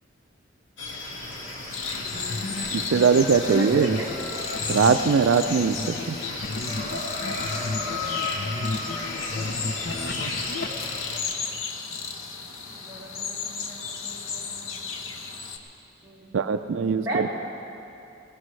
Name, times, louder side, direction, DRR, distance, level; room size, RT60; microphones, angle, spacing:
sound 1, 0.8-11.2, left 2 dB, 70° left, 2.2 m, -34 dB
sound 2, 1.7-15.6, left 5 dB, 90° left, 1.1 m, -35 dB
sound 3, 1.7-10.7, left 2 dB, 50° left, 0.6 m, -35 dB
voice 1, 1.9-2.8 3.4-4.1 12.7-14.9 16.0-17.3, equal, 15° right, -8 dB, 3.2 m, -37 dB
voice 2, 2.7-4.0 4.7-6.2 10.3-10.4 16.3-17.3, right 6 dB, 70° right, 9 dB, 0.4 m, -21 dB
21.0 x 18.0 x 3.2 m, 2.7 s
head